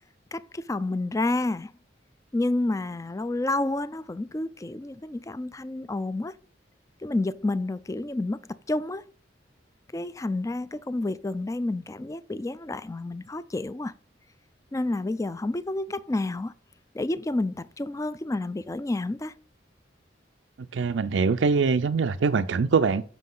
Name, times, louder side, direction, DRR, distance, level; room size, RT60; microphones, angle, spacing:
voice 1, 0.3-1.7 2.3-6.3 7.0-8.4 8.7-9.0 9.9-13.9 14.7-16.5 16.9-19.3, left 2 dB, 15° left, 0.3 m, -29 dB
voice 2, 20.7-23.0, right 5 dB, 85° right, 0.4 m, -23 dB
7.5 x 6.1 x 3.8 m
head